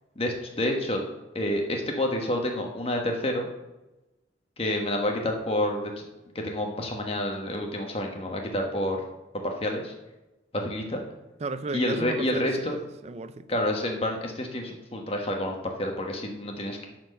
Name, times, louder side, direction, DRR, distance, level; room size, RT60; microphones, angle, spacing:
voice 1, 0.2-1.0 1.3-3.5 4.6-5.9 6.3-9.0 9.3-9.9 10.5-11.0 11.7-12.8 13.5-16.9, left 1 dB, 30° left, 1.2 m, -28 dB
voice 2, 11.4-13.5, right 3 dB, 35° right, 0.4 m, -35 dB
9.6 x 4.5 x 6.6 m
head